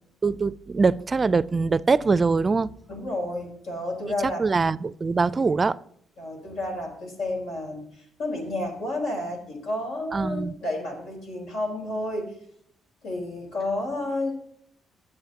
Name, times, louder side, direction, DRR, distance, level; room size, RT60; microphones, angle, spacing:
voice 1, 0.2-2.7 4.2-5.8 10.1-10.6, right 4 dB, 30° right, 0.4 m, -23 dB
voice 2, 2.9-4.4 6.2-12.3 13.0-14.3, left 1 dB, 85° left, 4.2 m, -31 dB
22.0 x 7.6 x 2.9 m
cardioid pair, 90°, 0 cm